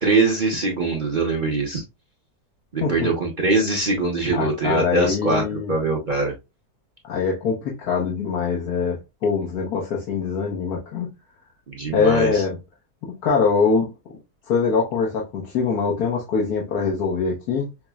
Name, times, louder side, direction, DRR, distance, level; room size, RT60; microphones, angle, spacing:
voice 1, 0.0-1.8 2.7-6.3 11.7-12.4, right 3 dB, 40° right, 0.7 m, -22 dB
voice 2, 4.3-5.7 7.1-11.1 11.9-12.6 13.2-13.9 14.5-17.7, left 5 dB, 75° left, 1.4 m, -23 dB
5.8 x 2.1 x 2.3 m
omnidirectional pair, 1.7 m